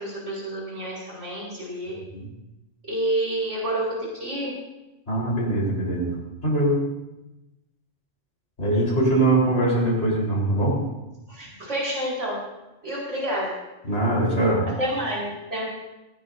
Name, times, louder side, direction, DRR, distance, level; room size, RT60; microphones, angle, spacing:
voice 1, 0.0-2.0 2.9-4.5 11.3-12.4 12.8-13.6 14.8-15.7, right 1 dB, 75° right, -5 dB, 5.3 m, -29 dB
voice 2, 5.1-6.1 6.4-6.9 8.6-10.8 13.8-14.7, right 1 dB, 65° left, -5 dB, 4.7 m, -22 dB
19.0 x 16.5 x 2.7 m, 0.98 s
omnidirectional pair, 1.2 m